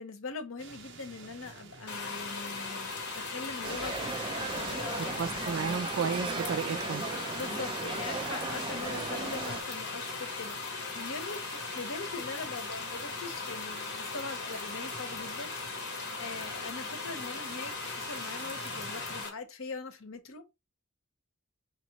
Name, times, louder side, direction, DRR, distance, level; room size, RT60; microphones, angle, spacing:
voice 1, 0.0-4.0 4.5-5.5 7.3-20.5, left 4 dB, 90° left, 0.8 m, -42 dB
sound 1, 0.6-19.2, right 5 dB, 65° right, 0.8 m, -50 dB
sound 2, 1.9-19.3, left 4 dB, 55° left, 1.2 m, -38 dB
sound 3, 3.6-9.6, right 4 dB, 25° right, 0.5 m, -37 dB
voice 2, 5.2-7.0, right 6 dB, 80° right, 0.4 m, -33 dB
4.1 x 2.9 x 2.8 m
head